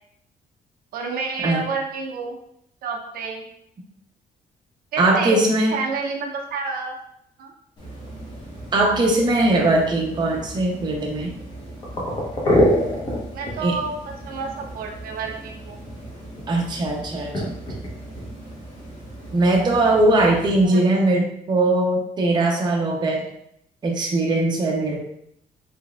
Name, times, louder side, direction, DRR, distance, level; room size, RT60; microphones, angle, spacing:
voice 1, 0.9-2.4 2.8-3.4 4.9-5.4 5.7-7.0 7.4-7.5 13.3-15.8 20.6-20.8, right 4 dB, 70° right, 2 dB, 0.6 m, -29 dB
voice 2, 5.0-5.8 8.7-11.3 13.6-13.7 16.5-17.3 19.3-23.2 23.8-25.0, right 2 dB, 30° right, -1 dB, 0.6 m, -20 dB
sound 1, 7.8-20.6, equal, 25° left, 1.0 m, -29 dB
4.1 x 3.4 x 2.3 m, 0.73 s
cardioid pair, 165°, 16 cm